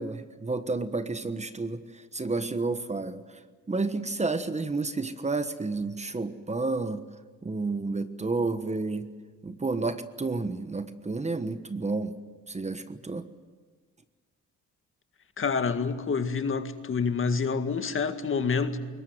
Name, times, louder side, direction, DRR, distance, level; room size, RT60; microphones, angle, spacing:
voice 1, 0.0-3.2 3.7-7.0 7.4-9.1 9.4-12.1 12.5-13.2, right 3 dB, 20° right, 1.3 m, -30 dB
voice 2, 15.4-18.8, left 5 dB, 45° left, 1.9 m, -27 dB
22.0 x 19.5 x 9.5 m
cardioid pair, 90°, 30 cm